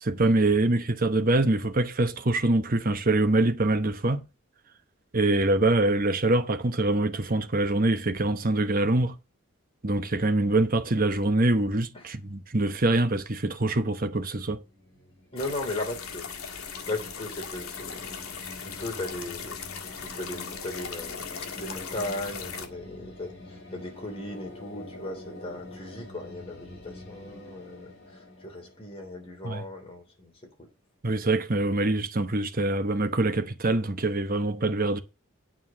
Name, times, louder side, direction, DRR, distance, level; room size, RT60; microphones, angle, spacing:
voice 1, 0.0-4.2 5.1-9.1 9.8-14.6 29.4-29.6 31.0-35.0, right 2 dB, 40° right, 0.9 m, -24 dB
sound 1, 14.6-29.7, left 1 dB, 50° left, 3.8 m, -46 dB
voice 2, 15.3-16.2 16.9-18.1 18.6-19.5 20.0-30.3, left 2 dB, 25° left, 3.2 m, -37 dB
sound 2, 15.4-22.7, left 6 dB, 80° left, 1.5 m, -39 dB
9.4 x 4.5 x 7.3 m
head